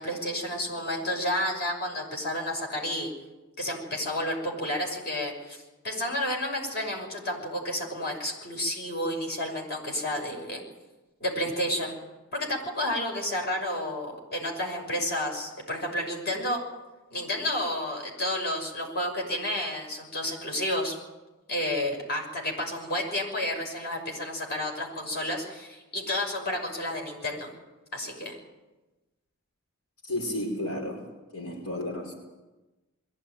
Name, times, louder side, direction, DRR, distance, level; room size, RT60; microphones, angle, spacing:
voice 1, 0.0-3.1 3.6-10.6 11.2-12.0 12.3-16.6 17.1-20.9 21.5-27.5 27.9-28.4, left 1 dB, 50° left, 1 dB, 6.3 m, -31 dB
voice 2, 30.0-31.0 31.3-32.1, left 1 dB, 85° left, 1 dB, 5.0 m, -32 dB
22.0 x 16.0 x 9.2 m, 1.1 s
head